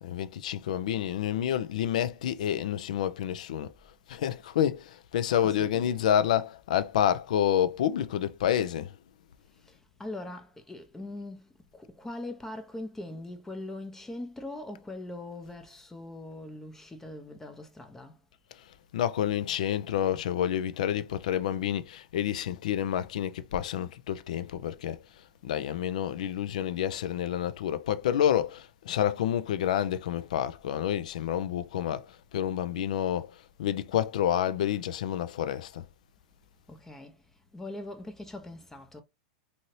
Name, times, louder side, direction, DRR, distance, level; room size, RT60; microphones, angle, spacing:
voice 1, 0.0-3.7 4.1-9.0 18.9-25.0 25.4-35.8, left 10 dB, 75° left, 0.3 m, -29 dB
voice 2, 5.4-5.9 9.7-18.2 36.7-37.2 37.5-39.0, left 2 dB, 10° left, 0.5 m, -41 dB
2.7 x 2.7 x 3.0 m
hypercardioid pair, 115°, 4 cm